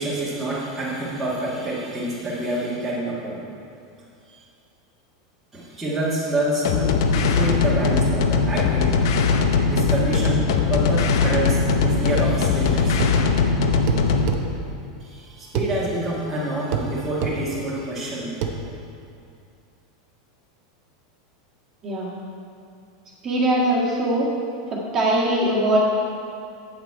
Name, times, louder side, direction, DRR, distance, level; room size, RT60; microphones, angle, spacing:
voice 1, 0.0-3.4 4.3-4.4 5.5-9.1 9.6-10.4 10.7-13.0 15.0-18.4, right 1 dB, 5° right, -10 dB, 1.5 m, -27 dB
sound 1, 6.6-14.3, left 4 dB, 60° left, 0.7 m, -20 dB
sound 2, 13.0-13.2 13.9-14.4 15.6-15.7 16.7-16.9 17.2-17.4 18.4-18.6, right 8 dB, 40° right, 0.7 m, -25 dB
voice 2, 23.2-24.3 24.7-25.8, right 1 dB, 20° right, -5 dB, 1.6 m, -21 dB
9.1 x 8.8 x 4.6 m, 2.5 s
supercardioid pair, 175°, 2 cm